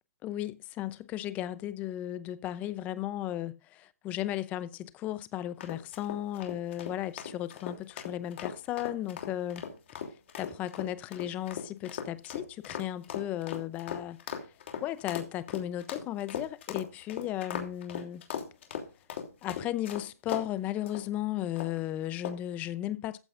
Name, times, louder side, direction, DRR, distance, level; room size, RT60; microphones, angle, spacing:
voice 1, 0.2-9.7 10.4-14.2 14.8-18.2 19.4-23.2, left 13 dB, 20° left, 0.6 m, -35 dB
sound 1, 5.6-20.5 20.9-21.1 21.6-21.8 22.2-22.5, left 7 dB, 50° left, 3.0 m, -39 dB
14.5 x 8.8 x 2.5 m
hypercardioid pair, 160°, 8 cm